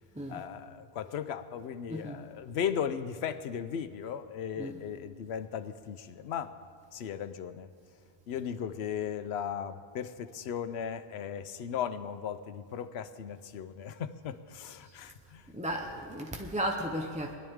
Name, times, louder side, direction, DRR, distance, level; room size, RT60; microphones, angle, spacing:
voice 1, 0.3-6.6 6.9-7.7 8.3-15.5, left 8 dB, 75° left, 12 dB, 0.9 m, -37 dB
voice 2, 1.9-2.2 4.6-4.8 15.5-17.3, equal, 10° right, 1 dB, 0.7 m, -35 dB
20.5 x 11.5 x 3.6 m, 2.2 s
omnidirectional pair, 1.1 m